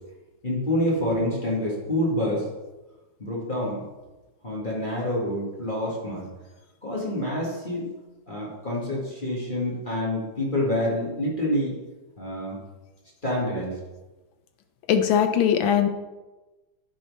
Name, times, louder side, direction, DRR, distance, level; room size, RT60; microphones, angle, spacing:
voice 1, 0.4-2.4 3.2-3.8 4.4-6.3 6.8-7.9 8.3-11.8 12.2-12.6 13.2-13.7, left 1 dB, 25° left, -4 dB, 2.0 m, -27 dB
voice 2, 14.9-15.9, left 8 dB, 85° left, 7 dB, 1.6 m, -20 dB
9.8 x 4.4 x 5.5 m, 1.1 s
omnidirectional pair, 2.1 m